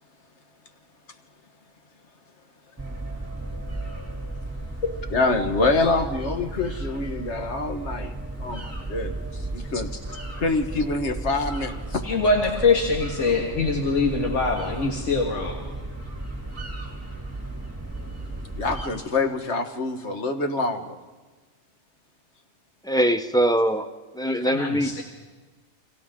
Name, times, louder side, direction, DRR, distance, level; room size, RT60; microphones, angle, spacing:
sound 1, 2.8-18.9, right 2 dB, 10° right, 3.0 m, -34 dB
voice 1, 5.1-8.1 8.4-9.2 9.5-9.9 10.4-12.0 18.6-21.0, left 3 dB, 70° left, 6 dB, 1.7 m, -26 dB
voice 2, 12.0-15.6 24.5-25.0, left 3 dB, 85° left, 0 dB, 2.2 m, -23 dB
voice 3, 22.8-23.9 24.1-25.0, equal, 5° left, 8 dB, 0.6 m, -22 dB
30.0 x 25.0 x 3.7 m, 1.3 s
omnidirectional pair, 1.2 m